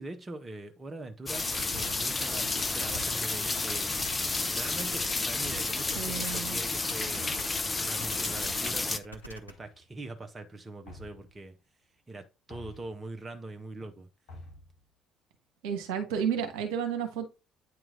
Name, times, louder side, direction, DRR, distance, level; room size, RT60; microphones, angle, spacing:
voice 1, 0.0-4.0 4.5-7.3 7.8-11.6 12.1-14.1, right 2 dB, 25° right, 0.9 m, -42 dB
sound 1, 1.3-9.5, left 1 dB, 90° left, 0.4 m, -46 dB
sound 2, 1.3-9.0, left 3 dB, 25° left, 0.6 m, -31 dB
sound 3, 1.7-2.3 2.9-3.6 4.0-4.6 5.4-5.9 7.2-7.7 9.2-10.0 10.9-11.4 12.5-13.0 14.3-14.8, left 1 dB, 60° left, 2.5 m, -48 dB
voice 2, 5.9-6.6 15.6-17.2, right 8 dB, 70° right, 1.1 m, -32 dB
8.9 x 3.0 x 3.8 m
figure-of-eight pair, 50°, 0 cm